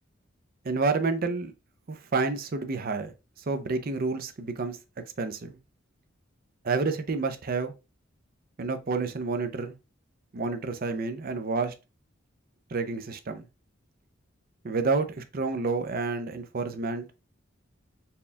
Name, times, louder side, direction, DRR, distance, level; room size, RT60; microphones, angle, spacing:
voice 1, 0.6-1.5 1.9-3.1 3.5-4.8 5.2-5.6 6.6-7.7 8.6-9.7 10.3-11.7 12.7-13.5 14.6-17.0, right 4 dB, 45° right, 0.5 m, -29 dB
4.3 x 2.3 x 3.2 m
head